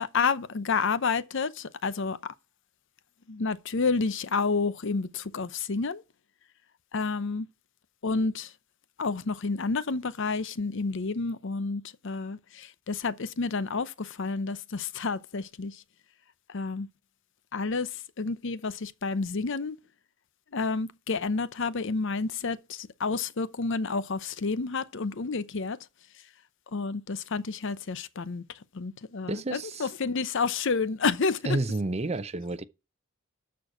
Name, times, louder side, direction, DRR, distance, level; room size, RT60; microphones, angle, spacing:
voice 1, 0.0-2.2 3.3-6.0 6.9-7.5 8.0-8.5 9.0-15.8 16.5-16.9 17.5-17.9 18.2-19.8 20.5-25.8 26.7-28.4 28.7-31.6, left 4 dB, 65° left, 0.7 m, -30 dB
voice 2, 29.3-29.9 31.4-32.6, right 2 dB, 30° right, 0.6 m, -30 dB
13.0 x 4.6 x 6.1 m
head